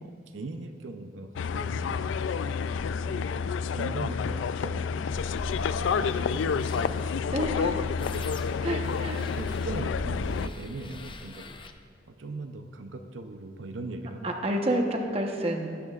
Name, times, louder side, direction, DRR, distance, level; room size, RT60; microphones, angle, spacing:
voice 1, 0.0-2.2 3.0-3.4 3.7-5.2 5.7-7.4 7.6-8.3 9.2-11.5 12.1-14.3, right 2 dB, 85° right, 6 dB, 0.6 m, -40 dB
sound 1, 1.4-10.5, left 6 dB, 80° left, 0.3 m, -29 dB
sound 2, 5.1-11.7, left 1 dB, 25° left, 0.5 m, -42 dB
voice 2, 7.3-7.8 8.6-9.2 14.2-15.7, right 1 dB, 30° right, 2 dB, 1.0 m, -29 dB
19.0 x 10.5 x 2.4 m, 2.3 s
head